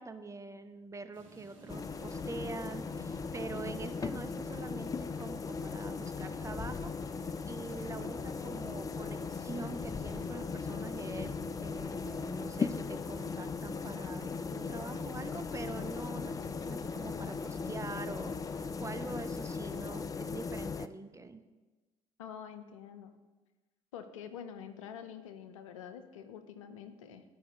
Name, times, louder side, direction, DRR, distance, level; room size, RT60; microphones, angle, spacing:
voice 1, 0.0-6.9 7.4-21.4, right 3 dB, 20° right, 8 dB, 0.6 m, -45 dB
sound 1, 1.1-20.1, right 4 dB, 85° right, 1.1 m, -55 dB
sound 2, 1.7-20.9, left 5 dB, 20° left, 0.3 m, -38 dB
voice 2, 22.2-23.1 23.9-27.2, left 8 dB, 80° left, 9 dB, 0.5 m, -46 dB
12.5 x 5.0 x 2.9 m, 1.2 s
hypercardioid pair, 50°, 16 cm